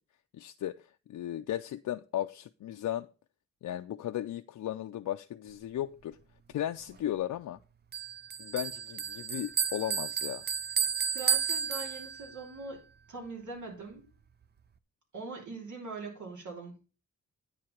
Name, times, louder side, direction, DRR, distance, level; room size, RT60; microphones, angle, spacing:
voice 1, 0.3-3.1 3.6-6.2 6.5-7.6 8.4-10.4, left 12 dB, 85° left, 0.5 m, -36 dB
Bell, 7.9-12.4, right 7 dB, 35° right, 0.5 m, -32 dB
voice 2, 11.1-12.8 13.1-14.0 15.1-16.7, right 4 dB, 75° right, 3.3 m, -42 dB
9.3 x 4.9 x 5.7 m
wide cardioid pair, 170°, 30 cm